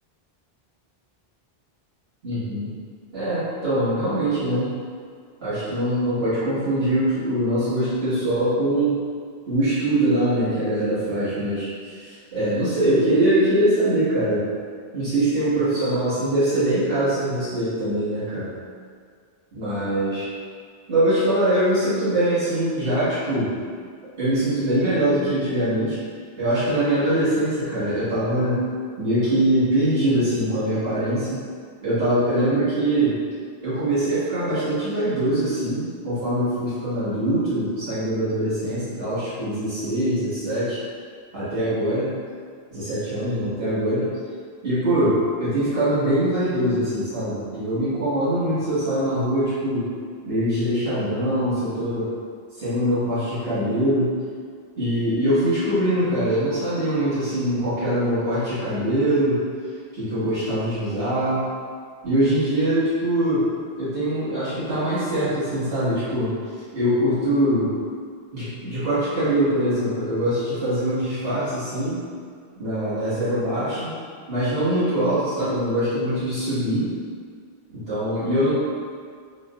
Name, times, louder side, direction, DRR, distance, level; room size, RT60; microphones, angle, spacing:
voice 1, 2.2-2.7 3.1-4.7 5.4-9.0 9.5-14.5 14.9-18.5 19.5-20.3 20.9-23.5 24.2-26.0 26.4-28.6 29.0-31.4 31.8-33.2 33.6-40.8 41.3-42.1 42.7-44.1 44.6-49.9 50.2-52.1 52.6-54.1 54.8-59.4 59.9-61.4 62.0-63.4 63.8-66.3 66.7-67.7 68.3-72.0 72.6-74.0 74.3-76.9 77.9-78.5, right 1 dB, 70° right, -14 dB, 1.8 m, -23 dB
3.8 x 2.2 x 2.4 m, 2.1 s
omnidirectional pair, 1.1 m